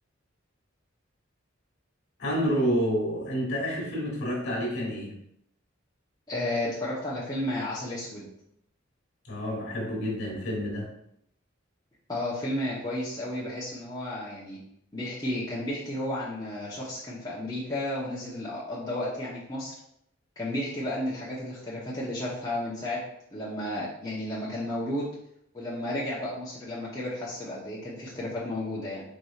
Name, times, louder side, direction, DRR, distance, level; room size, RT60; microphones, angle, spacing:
voice 1, 2.2-5.1 9.2-10.9, equal, 60° left, -1 dB, 1.6 m, -29 dB
voice 2, 6.3-8.3 12.1-14.6 14.9-19.7 20.4-23.0 23.3-25.1 25.5-29.0, left 1 dB, 20° left, -8 dB, 0.9 m, -32 dB
4.7 x 4.1 x 2.4 m, 0.74 s
head